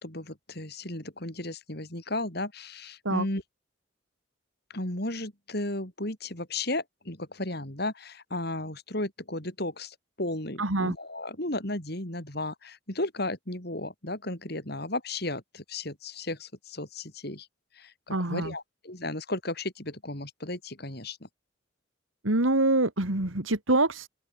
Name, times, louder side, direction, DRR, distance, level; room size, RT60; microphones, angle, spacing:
voice 1, 0.0-3.4 4.7-17.5 17.7-21.3, left 2 dB, 50° left, 4.7 m, -34 dB
voice 2, 10.6-10.9 18.1-18.5 22.2-24.1, right 2 dB, 80° right, 2.7 m, -25 dB
open air
head